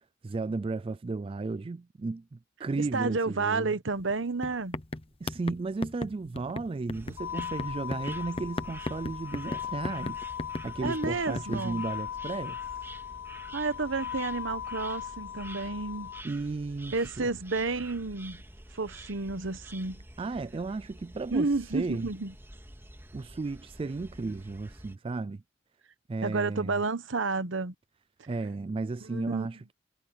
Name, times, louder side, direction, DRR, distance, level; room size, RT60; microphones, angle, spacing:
voice 1, 0.2-3.7 5.2-10.2 10.6-12.6 16.2-17.3 20.2-22.1 23.1-25.4 26.1-26.8 28.3-29.7, right 3 dB, 30° right, 0.3 m, -34 dB
voice 2, 2.8-4.8 10.8-11.8 13.5-16.1 16.9-18.4 18.7-20.0 21.3-22.3 26.2-27.7 29.0-29.5, right 3 dB, 75° right, 1.1 m, -31 dB
sound 1, 4.0-4.1 4.4-11.6, left 1 dB, 30° left, 1.0 m, -36 dB
sound 2, 6.9-25.0, right 1 dB, 10° right, 2.9 m, -48 dB
sound 3, 7.2-16.2, left 9 dB, 75° left, 0.5 m, -39 dB
head